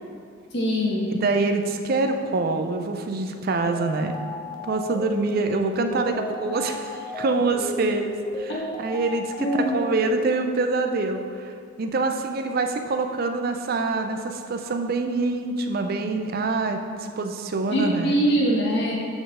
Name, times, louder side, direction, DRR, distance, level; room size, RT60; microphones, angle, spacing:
voice 1, 0.5-1.1 8.5-8.6 9.4-9.8 17.7-18.9, equal, 55° left, -4 dB, 1.4 m, -23 dB
voice 2, 1.2-4.1 4.6-8.1 8.4-8.5 8.8-11.5 11.8-18.2, right 3 dB, 45° right, 6 dB, 0.4 m, -25 dB
sound 1, 3.6-10.1, left 1 dB, 20° left, 0.4 m, -34 dB
7.9 x 4.0 x 3.7 m, 2.3 s
head